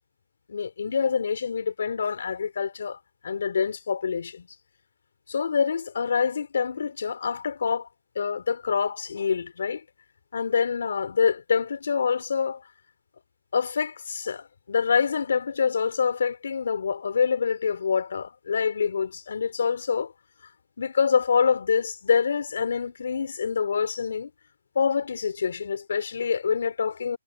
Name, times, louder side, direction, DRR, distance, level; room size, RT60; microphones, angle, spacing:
voice 1, 0.5-4.5 5.3-7.9 8.2-9.8 10.3-12.6 13.5-20.1 20.8-24.3 24.8-27.2, left 6 dB, 60° left, 3.6 m, -26 dB
hypercardioid pair, 160°, 0 cm